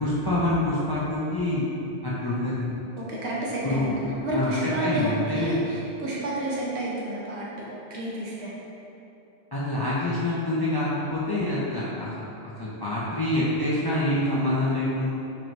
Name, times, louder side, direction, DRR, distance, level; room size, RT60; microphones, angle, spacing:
voice 1, 0.0-1.6 2.0-2.6 3.6-3.9 4.3-4.5 4.8-5.6 9.5-12.3 12.6-15.1, left 1 dB, 40° left, -8 dB, 0.3 m, -26 dB
voice 2, 3.0-3.9 4.2-8.5, right 1 dB, 90° right, -6 dB, 1.1 m, -30 dB
4.5 x 3.1 x 2.6 m, 2.9 s
omnidirectional pair, 1.1 m